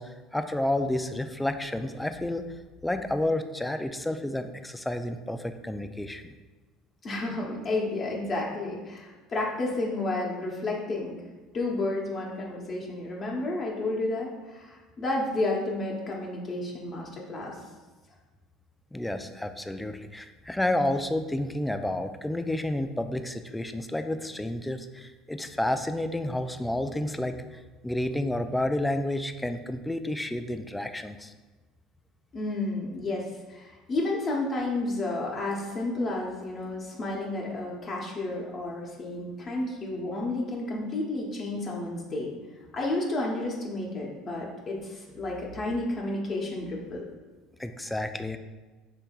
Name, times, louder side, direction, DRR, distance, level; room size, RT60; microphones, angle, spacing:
voice 1, 0.0-2.5 2.8-6.3 18.9-31.3 47.6-48.4, left 1 dB, 10° left, 8 dB, 0.3 m, -30 dB
voice 2, 7.0-11.2 11.5-17.6 32.3-42.3 42.7-47.0, left 2 dB, 40° left, -3 dB, 0.9 m, -31 dB
5.3 x 3.2 x 2.4 m, 1.3 s
supercardioid pair, 85°, 0 cm